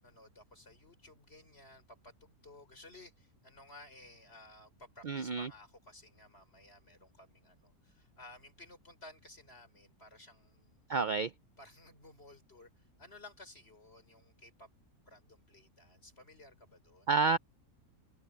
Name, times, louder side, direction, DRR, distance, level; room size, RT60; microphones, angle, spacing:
voice 1, 0.0-10.9 11.6-14.7 15.1-17.1, left 2 dB, 40° left, 6.0 m, -56 dB
voice 2, 5.1-5.5 10.9-11.3 17.1-17.4, right 4 dB, 70° right, 0.4 m, -29 dB
omnidirectional pair, 1.6 m